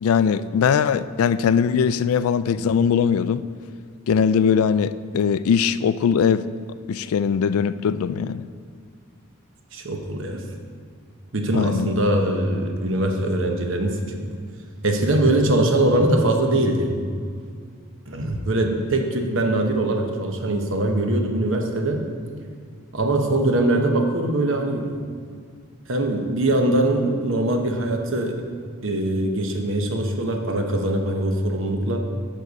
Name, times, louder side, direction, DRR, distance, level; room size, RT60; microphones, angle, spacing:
voice 1, 0.0-3.4 4.1-6.4 6.9-8.4 11.5-11.9, left 7 dB, 80° left, 15 dB, 0.3 m, -20 dB
voice 2, 9.7-10.4 11.3-14.3 14.8-17.1 18.1-22.0 22.9-25.0 25.9-28.4 28.8-32.0, right 1 dB, 60° right, 3 dB, 1.0 m, -22 dB
10.0 x 6.6 x 4.1 m, 2.1 s
head